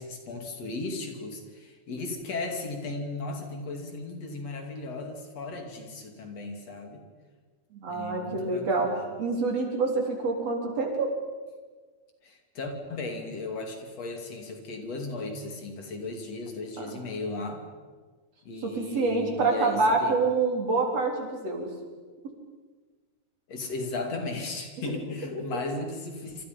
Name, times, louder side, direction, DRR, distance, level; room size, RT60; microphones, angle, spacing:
voice 1, 0.0-7.0 7.9-9.0 12.2-17.7 18.4-20.2 23.5-26.4, left 2 dB, 60° left, 4 dB, 3.7 m, -36 dB
voice 2, 7.7-8.9 9.2-11.1 16.8-17.0 18.6-21.7 25.5-25.6, right 3 dB, 55° right, 1 dB, 4.8 m, -27 dB
26.5 x 26.5 x 5.4 m, 1.4 s
omnidirectional pair, 3.4 m